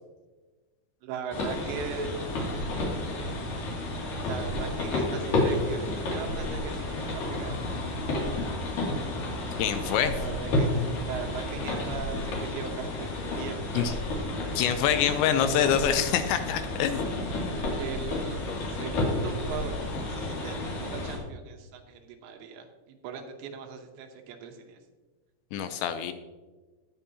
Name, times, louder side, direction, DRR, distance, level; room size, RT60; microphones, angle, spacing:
voice 1, 1.0-2.2 4.2-7.5 10.1-10.7 11.0-14.0 17.8-24.8, right 6 dB, 75° right, 5 dB, 3.0 m, -39 dB
sound 1, 1.3-21.2, left 2 dB, 55° left, 3.7 m, -31 dB
sound 2, 7.5-12.5, right 2 dB, 25° right, 1.6 m, -44 dB
voice 2, 9.6-10.1 13.7-13.9 14.6-17.1 25.5-26.1, left 9 dB, 80° left, 9 dB, 2.7 m, -25 dB
18.5 x 7.3 x 2.8 m, 1.3 s
omnidirectional pair, 5.4 m